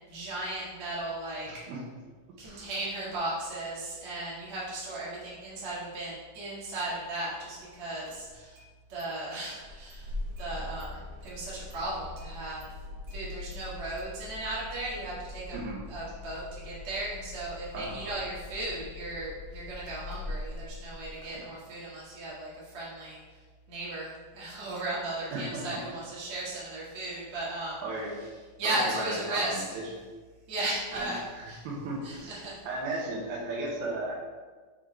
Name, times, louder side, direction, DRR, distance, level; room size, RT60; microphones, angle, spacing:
voice 1, 0.1-1.5 2.4-8.6 8.9-10.1 10.4-12.7 13.1-15.6 15.9-23.2 23.7-27.8 28.6-29.6 30.5-31.2 31.5-31.6 32.0-32.6, right 2 dB, 45° right, -7 dB, 2.4 m, -36 dB
voice 2, 1.5-1.8 2.4-2.7 15.5-15.8 17.7-18.1 21.2-21.5 25.3-25.8 27.8-28.2 28.6-29.6 30.9-34.1, right 2 dB, 90° right, -3 dB, 3.0 m, -36 dB
Engine starting, 7.5-7.6 8.0-8.7 9.0-9.1 9.5-21.4, left 2 dB, 70° right, 1.3 m, -42 dB
7.1 x 3.8 x 4.5 m, 1.4 s
omnidirectional pair, 4.1 m